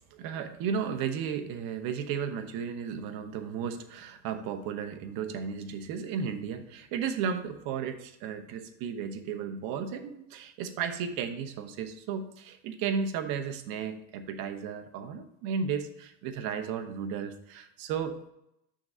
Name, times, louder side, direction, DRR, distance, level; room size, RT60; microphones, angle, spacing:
voice 1, 0.1-18.2, right 7 dB, 65° right, 8 dB, 0.9 m, -34 dB
5.9 x 3.7 x 5.3 m, 0.80 s
cardioid pair, 125°, 38 cm